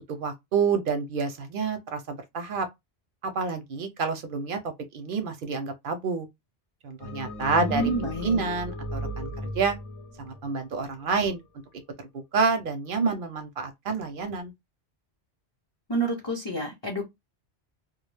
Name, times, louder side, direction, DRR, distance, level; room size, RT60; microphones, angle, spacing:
voice 1, 0.1-2.7 3.3-6.3 6.8-7.8 8.2-9.3 9.6-9.8 10.2-11.4 12.3-14.5, right 4 dB, 60° right, 0.6 m, -28 dB
sound 1, 7.0-11.4, equal, 80° left, 1.0 m, -36 dB
voice 2, 7.6-8.4 15.9-17.1, right 2 dB, 30° left, 0.6 m, -29 dB
2.3 x 2.1 x 3.1 m
omnidirectional pair, 1.1 m